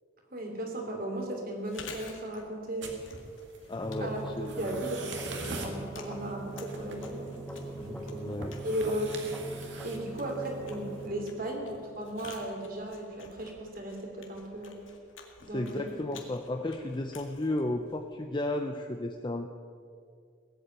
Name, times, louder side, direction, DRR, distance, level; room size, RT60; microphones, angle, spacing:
voice 1, 0.3-2.9 4.0-4.2 4.6-7.3 7.9-8.3 8.6-9.1 9.8-14.8 15.4-16.0, right 1 dB, 45° right, 2 dB, 2.9 m, -36 dB
Chewing mastication, 1.5-18.4, left 5 dB, 75° left, 2.0 m, -52 dB
sound 1, 2.8-11.1, right 3 dB, 60° right, 2.1 m, -45 dB
voice 2, 3.7-4.8 7.8-8.5 15.5-19.5, left 1 dB, 25° left, 5 dB, 0.6 m, -34 dB
sound 2, 3.8-12.8, right 2 dB, 5° left, 1.5 m, -42 dB
18.5 x 8.4 x 8.9 m, 2.3 s
head